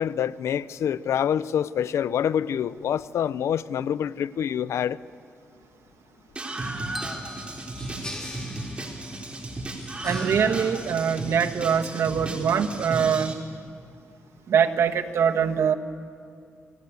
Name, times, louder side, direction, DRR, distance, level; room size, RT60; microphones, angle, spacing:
voice 1, 0.0-5.0, left 9 dB, 85° left, 0.5 m, -26 dB
Screaming, 6.4-13.3, right 2 dB, 25° right, 3.4 m, -34 dB
sound 1, 6.8-11.8, left 1 dB, 15° left, 3.8 m, -44 dB
sound 2, 6.9-8.7, equal, 5° right, 1.3 m, -43 dB
voice 2, 10.0-13.4 14.5-15.7, right 7 dB, 80° right, 1.4 m, -23 dB
28.5 x 18.5 x 8.3 m
cardioid pair, 105°, 5 cm